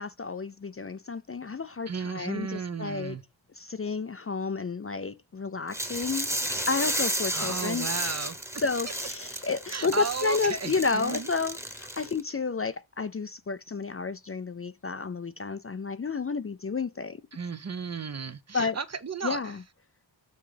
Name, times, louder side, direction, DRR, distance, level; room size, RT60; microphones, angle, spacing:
voice 1, 0.0-3.2 3.6-6.3 6.7-7.9 8.6-17.2 18.5-18.8 19.2-19.6, left 4 dB, 30° left, 0.5 m, -31 dB
voice 2, 1.9-3.2 7.3-8.6 9.7-11.3 12.0-12.1 17.3-19.4, right 5 dB, 35° right, 0.6 m, -34 dB
sound 1, 5.7-12.2, right 1 dB, 5° right, 1.1 m, -33 dB
6.9 x 3.7 x 5.0 m
wide cardioid pair, 90°, 45 cm